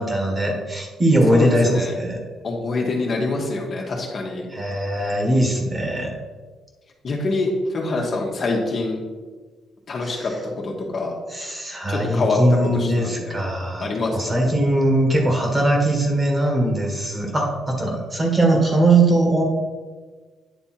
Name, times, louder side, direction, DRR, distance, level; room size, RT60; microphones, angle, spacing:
voice 1, 0.0-2.2 4.5-6.1 10.0-10.4 11.3-19.4, right 1 dB, 25° right, 1 dB, 1.7 m, -20 dB
voice 2, 2.4-4.4 7.0-7.5 7.7-9.0 9.9-10.3 10.6-11.1 11.9-12.4 12.8-13.2 13.8-14.1, left 3 dB, 50° left, -1 dB, 1.5 m, -25 dB
9.6 x 3.4 x 4.4 m, 1.4 s
cardioid pair, 90°, 0 cm